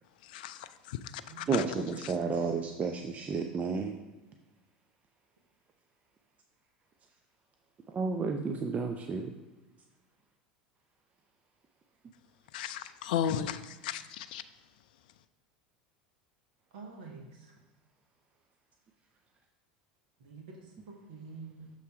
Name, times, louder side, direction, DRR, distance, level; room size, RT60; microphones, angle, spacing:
voice 1, 0.2-1.7 2.0-2.4 12.5-14.4, left 9 dB, 70° left, 0.4 m, -36 dB
voice 2, 1.5-3.9 7.9-9.3, right 4 dB, 30° right, 0.6 m, -31 dB
voice 3, 16.7-17.5 20.2-21.7, right 4 dB, 70° right, 1.2 m, -48 dB
6.8 x 3.8 x 4.9 m
hypercardioid pair, 80°, 5 cm